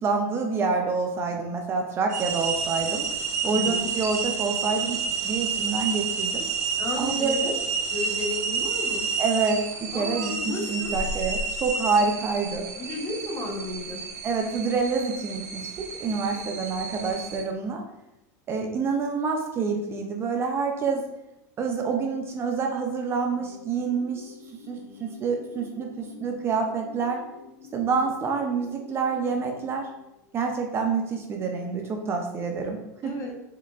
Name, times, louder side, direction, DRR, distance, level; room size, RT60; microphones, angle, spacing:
voice 1, 0.0-3.0 3.4-5.0 5.2-6.5 7.0-7.5 9.2-12.7 14.2-17.8 18.5-21.0 21.6-24.3 24.7-27.2 27.7-29.9 30.3-32.8 33.0-33.1, right 4 dB, 30° right, 3 dB, 0.4 m, -27 dB
sound 1, 2.1-17.4, right 5 dB, 85° right, 0.7 m, -30 dB
voice 2, 3.5-3.9 6.8-7.5 7.9-9.1 9.9-10.9 12.8-14.1 16.3-16.6 33.0-33.3, left 2 dB, 35° left, -1 dB, 1.0 m, -34 dB
sound 2, 23.2-30.4, left 6 dB, 60° left, 0.9 m, -47 dB
4.5 x 3.5 x 2.4 m, 0.90 s
supercardioid pair, 135°, 9 cm